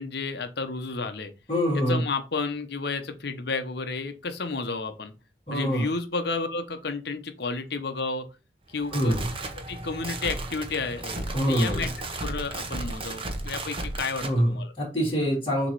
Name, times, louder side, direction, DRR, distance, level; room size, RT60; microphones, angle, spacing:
voice 1, 0.0-1.3 1.7-5.1 5.5-8.2 8.7-9.2 9.5-14.7, left 4 dB, 60° left, 8 dB, 0.9 m, -32 dB
voice 2, 1.5-2.0 5.5-5.9 8.9-9.3 11.3-11.9 14.2-14.5 14.8-15.7, equal, 30° left, -10 dB, 2.7 m, -25 dB
sound 1, 8.7-14.4, right 2 dB, 30° right, 1.0 m, -34 dB
7.1 x 3.1 x 4.7 m, 0.29 s
head